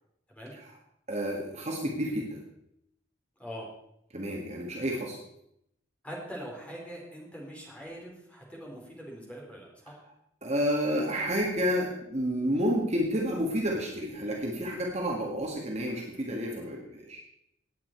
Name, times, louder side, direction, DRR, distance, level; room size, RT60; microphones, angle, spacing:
voice 1, 1.1-2.4 4.1-5.2 10.4-17.2, equal, 35° right, 0 dB, 1.8 m, -30 dB
voice 2, 6.0-10.0, equal, 5° left, -3 dB, 4.0 m, -42 dB
18.0 x 8.9 x 4.6 m, 0.77 s
head